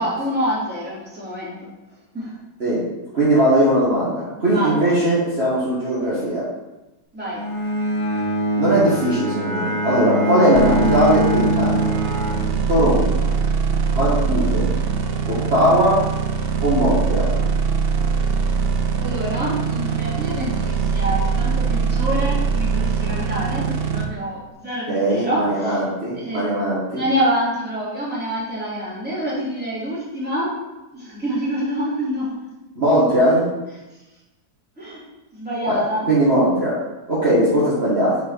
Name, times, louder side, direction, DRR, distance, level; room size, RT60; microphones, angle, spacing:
voice 1, 0.0-1.7 2.1-2.3 4.5-4.8 7.1-7.4 19.0-25.8 26.2-26.5 26.9-30.5 30.9-32.5 34.8-35.0 35.3-36.1, equal, 5° right, -8 dB, 2.8 m, -26 dB
voice 2, 3.1-6.4 8.6-11.8 12.7-13.3 13.9-14.7 15.3-16.0 16.6-17.3 24.9-27.0 32.8-33.4 35.7-35.8 36.1-36.7 37.1-38.1, right 1 dB, 35° right, -9 dB, 2.0 m, -19 dB
Bowed string instrument, 7.3-13.1, equal, 20° left, 1.6 m, -23 dB
sound 1, 10.5-24.1, right 5 dB, 75° right, 0.5 m, -22 dB
8.0 x 4.6 x 4.7 m, 1.0 s
omnidirectional pair, 1.9 m